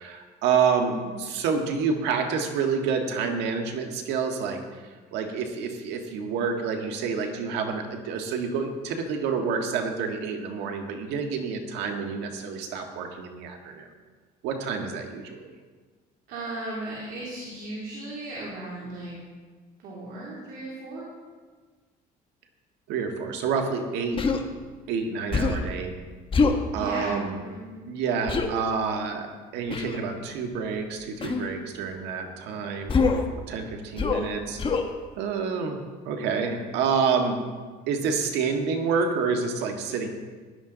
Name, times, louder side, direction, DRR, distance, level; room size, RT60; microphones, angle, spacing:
voice 1, 0.0-13.9 14.4-15.5 22.9-24.2 24.9-25.9 26.7-27.4 27.9-29.3 29.5-33.2 33.5-34.6 35.2-37.4 37.9-40.1, right 5 dB, 90° right, 3 dB, 1.7 m, -28 dB
voice 2, 0.8-1.1 16.3-19.2 19.8-21.1 26.7-27.9, right 2 dB, 70° right, -4 dB, 3.0 m, -36 dB
Human voice, 24.2-24.4 25.3-25.7 26.3-26.6 28.3-28.5 29.7-30.0 31.2-31.5 32.9-33.3 34.0-34.3 34.6-34.9, left 4 dB, 30° left, 1.2 m, -24 dB
16.0 x 11.0 x 3.9 m, 1.4 s
cardioid pair, 110°, 17 cm